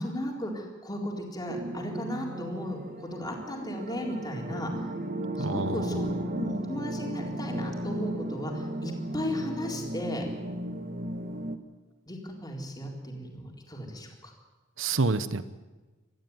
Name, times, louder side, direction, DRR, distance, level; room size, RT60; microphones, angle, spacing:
voice 1, 0.0-4.8 5.4-10.2 12.1-14.3, equal, 20° left, 0 dB, 4.0 m, -35 dB
sound 1, 1.5-11.6, right 1 dB, 45° right, 1.3 m, -35 dB
voice 2, 5.4-6.0 14.8-15.6, right 3 dB, 70° right, 13 dB, 1.0 m, -28 dB
22.5 x 14.0 x 9.5 m, 1.2 s
head